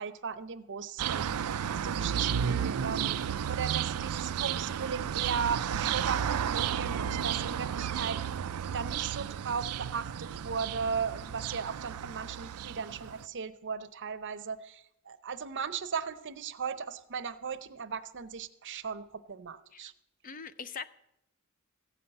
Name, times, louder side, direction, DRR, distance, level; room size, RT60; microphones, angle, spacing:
voice 1, 0.0-8.2 8.7-19.9, right 6 dB, 55° right, 11 dB, 0.7 m, -37 dB
sound 1, 1.0-13.3, right 8 dB, 85° right, 0.4 m, -33 dB
voice 2, 20.2-20.9, left 6 dB, 40° left, 14 dB, 0.5 m, -42 dB
15.0 x 5.6 x 8.9 m, 0.83 s
head